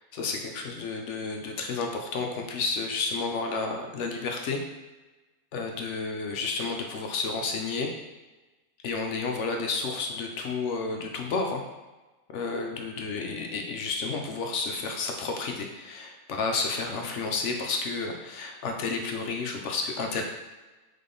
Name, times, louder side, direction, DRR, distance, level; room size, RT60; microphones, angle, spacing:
voice 1, 0.0-4.6 5.5-7.9 8.8-11.6 12.3-20.2, left 4 dB, 65° left, 3 dB, 0.8 m, -31 dB
3.7 x 3.7 x 3.7 m, 1.2 s
omnidirectional pair, 1.6 m